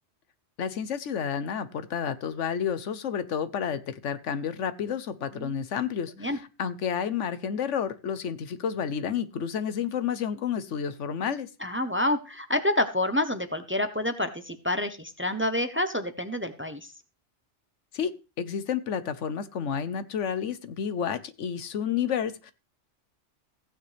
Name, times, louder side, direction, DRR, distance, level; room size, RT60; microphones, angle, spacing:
voice 1, 0.6-11.5 17.9-22.5, left 7 dB, 85° left, 1.2 m, -30 dB
voice 2, 11.6-16.9, left 1 dB, 10° right, 0.8 m, -28 dB
15.5 x 9.2 x 3.4 m
omnidirectional pair, 1.2 m